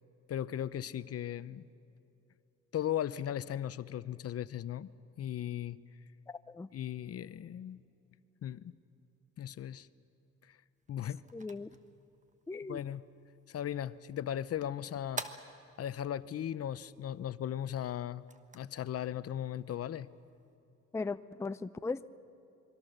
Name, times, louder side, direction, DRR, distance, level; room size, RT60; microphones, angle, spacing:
voice 1, 0.3-1.7 2.7-4.9 5.2-5.8 6.7-7.8 8.4-8.7 9.4-9.9 10.9-11.2 12.7-13.1 13.5-15.2 15.8-18.2 18.5-20.1, left 10 dB, 50° left, 16 dB, 0.7 m, -37 dB
voice 2, 6.3-6.7 11.3-11.7 12.5-12.8 20.9-22.0, left 3 dB, 10° left, 13 dB, 0.5 m, -38 dB
sound 1, 10.8-20.6, right 3 dB, 25° right, 1.3 m, -51 dB
27.0 x 22.5 x 6.7 m, 2.7 s
cardioid pair, 90°, 30 cm